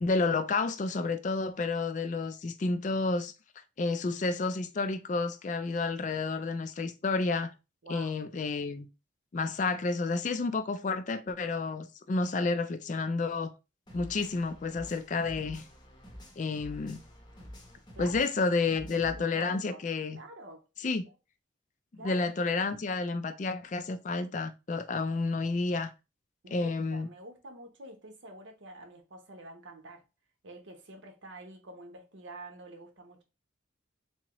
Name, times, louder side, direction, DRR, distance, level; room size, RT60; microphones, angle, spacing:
voice 1, 0.0-3.3 3.8-7.5 7.9-8.9 9.3-13.5 13.9-15.6 16.4-17.0 18.0-20.2 20.8-21.0 22.0-25.9 26.5-27.1, left 3 dB, 40° left, 0.3 m, -30 dB
voice 2, 7.8-8.2 17.9-18.2 18.9-19.8 20.1-20.6 21.0-21.1 22.0-22.3 26.4-30.0 30.4-33.2, right 1 dB, 75° right, 0.9 m, -47 dB
sound 1, 13.9-19.2, equal, 25° left, 0.7 m, -48 dB
3.5 x 2.9 x 2.9 m
head